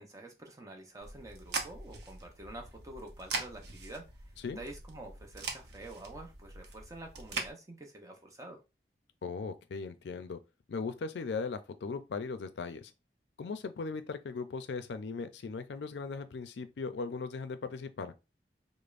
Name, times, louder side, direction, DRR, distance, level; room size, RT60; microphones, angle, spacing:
voice 1, 0.0-8.6, right 2 dB, 20° right, 0.6 m, -48 dB
sound 1, 1.0-7.5, right 4 dB, 70° right, 0.7 m, -42 dB
voice 2, 9.2-10.4 10.7-12.9 13.4-18.1, left 4 dB, 80° left, 0.4 m, -38 dB
5.0 x 2.0 x 2.5 m
head